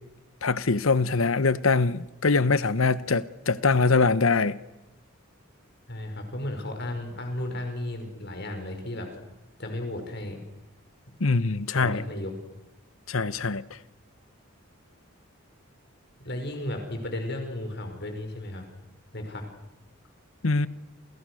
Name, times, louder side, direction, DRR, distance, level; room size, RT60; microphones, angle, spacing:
voice 1, 0.4-4.6 11.2-12.0 13.1-13.6 20.4-20.7, left 4 dB, 70° left, 1.0 m, -23 dB
voice 2, 5.9-9.1 9.6-10.4 11.7-12.3 16.2-18.7 19.1-19.4, left 1 dB, 50° left, 5.8 m, -34 dB
29.0 x 28.5 x 6.5 m
head